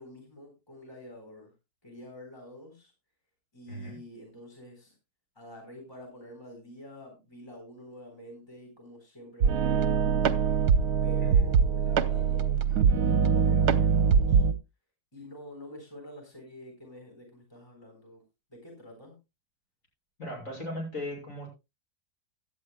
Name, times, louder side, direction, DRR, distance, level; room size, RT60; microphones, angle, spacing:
voice 1, 0.0-1.5 1.8-2.9 3.5-4.9 5.4-10.3 11.0-14.5 15.1-18.2 18.5-19.2, equal, 15° left, 1 dB, 4.0 m, -47 dB
sound 1, 9.4-14.5, right 6 dB, 75° right, 1.4 m, -23 dB
voice 2, 20.2-21.5, left 1 dB, 50° left, -1 dB, 6.8 m, -37 dB
17.0 x 11.5 x 2.2 m, 0.26 s
omnidirectional pair, 1.8 m